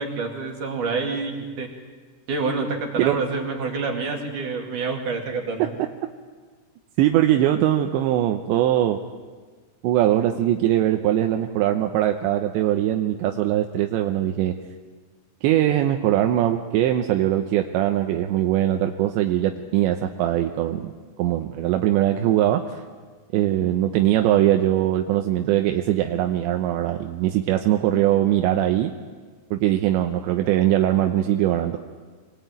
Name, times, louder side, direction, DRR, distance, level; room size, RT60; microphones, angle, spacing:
voice 1, 0.0-1.7 2.3-5.8, right 4 dB, 45° right, 2 dB, 3.4 m, -27 dB
voice 2, 7.0-9.0 9.8-14.5 15.4-20.9 21.2-22.8 23.3-28.9 29.5-31.8, right 12 dB, 75° right, 5 dB, 2.7 m, -21 dB
25.0 x 20.0 x 9.3 m, 1.5 s
omnidirectional pair, 6.0 m